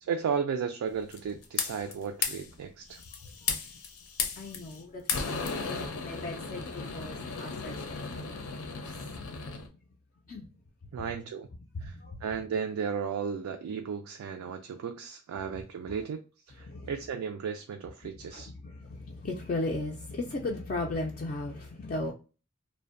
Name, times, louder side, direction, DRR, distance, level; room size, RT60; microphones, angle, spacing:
voice 1, 0.0-3.0 10.9-11.5 11.8-16.2 16.5-18.5, right 6 dB, 90° right, 0.3 m, -34 dB
sound 1, 1.1-1.9 2.2-2.5 2.9-4.8 5.1-9.7, left 5 dB, 90° left, 0.6 m, -35 dB
voice 2, 3.1-3.5 4.4-5.6 6.0-8.4 8.8-9.1 10.2-10.5 11.0-11.1 11.7-12.2 16.6-16.9 18.2-22.1, left 2 dB, 40° left, 0.3 m, -37 dB
2.5 x 2.1 x 2.5 m
head